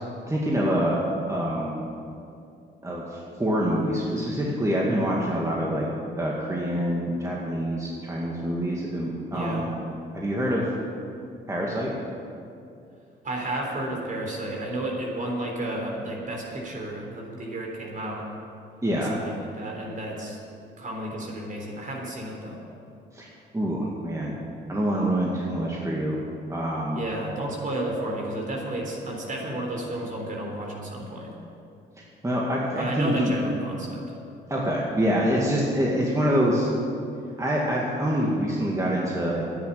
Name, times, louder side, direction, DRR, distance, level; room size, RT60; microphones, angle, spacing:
voice 1, 0.3-1.0 1.3-1.8 2.8-5.9 6.2-9.7 10.1-10.7 11.5-11.9 18.8-19.2 23.1-23.3 23.5-24.3 24.7-26.2 26.5-27.0 32.0-33.3 34.5-36.7 37.4-39.5, equal, 15° right, -4 dB, 2.1 m, -26 dB
voice 2, 9.3-9.6 13.2-18.2 18.9-20.4 20.8-22.6 27.0-31.3 32.8-34.2, right 1 dB, 40° right, 0 dB, 3.5 m, -32 dB
10.5 x 9.8 x 8.5 m, 2.5 s
cardioid pair, 90°, 20 cm